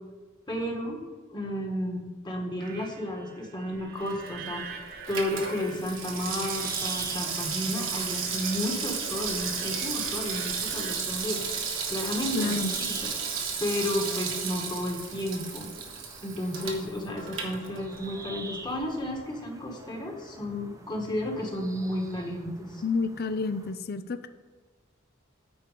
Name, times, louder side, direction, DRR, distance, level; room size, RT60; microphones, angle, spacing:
voice 1, 0.5-15.7 16.2-22.8, left 1 dB, 20° left, 1 dB, 1.6 m, -33 dB
sound 1, 2.6-11.0, right 6 dB, 50° right, 0.9 m, -46 dB
Water tap faucet / Sink (filling or washing), 3.9-18.2 18.5-18.6, right 6 dB, 70° right, 1.5 m, -33 dB
sound 2, 6.1-23.7, right 2 dB, 15° right, 0.8 m, -47 dB
voice 2, 12.3-12.7 22.8-24.3, left 4 dB, 50° left, 11 dB, 0.5 m, -29 dB
9.6 x 4.6 x 6.7 m, 1.3 s
head